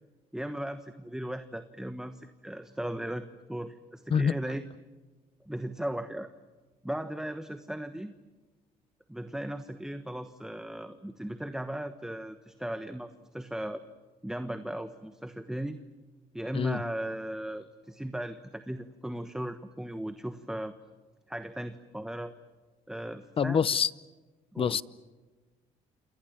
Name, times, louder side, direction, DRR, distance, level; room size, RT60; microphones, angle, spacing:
voice 1, 0.3-4.7 5.4-6.3 6.8-8.1 9.1-13.8 14.2-15.8 16.3-20.7 21.3-22.3 22.9-23.7 24.5-24.8, right 1 dB, 5° right, 1.3 m, -37 dB
voice 2, 23.4-23.9 24.6-24.8, left 7 dB, 35° left, 0.8 m, -26 dB
28.5 x 28.0 x 7.4 m
cardioid pair, 95°, 15 cm